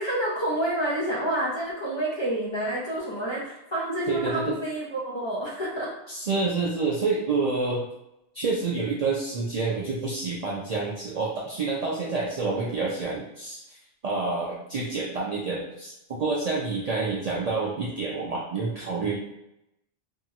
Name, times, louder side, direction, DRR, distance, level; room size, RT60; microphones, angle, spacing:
voice 1, 0.0-5.9, right 1 dB, 30° left, -6 dB, 0.6 m, -28 dB
voice 2, 4.1-4.6 6.1-7.8 8.3-13.6 14.0-19.2, right 3 dB, 55° right, -5 dB, 0.4 m, -28 dB
2.8 x 2.7 x 2.4 m, 0.87 s
omnidirectional pair, 1.1 m